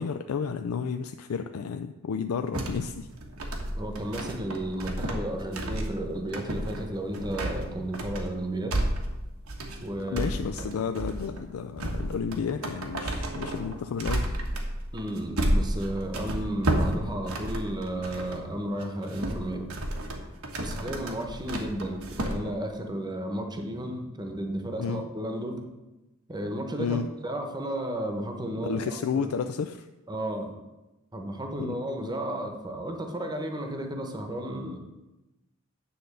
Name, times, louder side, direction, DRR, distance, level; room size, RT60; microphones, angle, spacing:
voice 1, 0.0-3.1 10.1-14.3 24.8-25.0 26.8-27.1 28.6-29.9 31.6-31.7, left 6 dB, 85° left, 8 dB, 0.4 m, -31 dB
sound 1, 2.5-18.4 18.8-22.4, right 1 dB, 85° right, 1.3 m, -32 dB
voice 2, 3.7-8.8 9.8-10.3 10.6-10.7 14.9-19.7 20.6-25.6 26.3-29.3 30.1-30.5 31.1-34.8, right 1 dB, 20° right, 4 dB, 0.9 m, -33 dB
9.6 x 3.9 x 6.7 m, 1.0 s
head